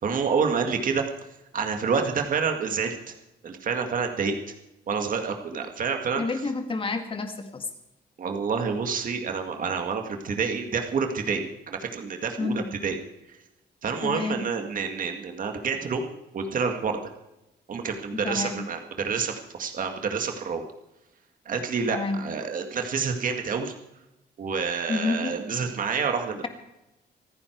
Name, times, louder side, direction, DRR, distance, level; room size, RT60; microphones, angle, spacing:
voice 1, 0.0-1.0 1.5-3.1 3.4-4.4 4.9-6.2 8.2-13.0 13.8-17.0 17.7-20.6 21.5-23.7 24.4-26.4, right 5 dB, 50° right, 4 dB, 2.0 m, -28 dB
voice 2, 6.2-7.7 12.4-12.7 14.0-14.4 18.1-18.6 21.9-22.2 24.9-25.3, left 3 dB, 30° left, 6 dB, 1.9 m, -29 dB
26.5 x 9.8 x 4.6 m, 0.93 s
cardioid pair, 150°, 18 cm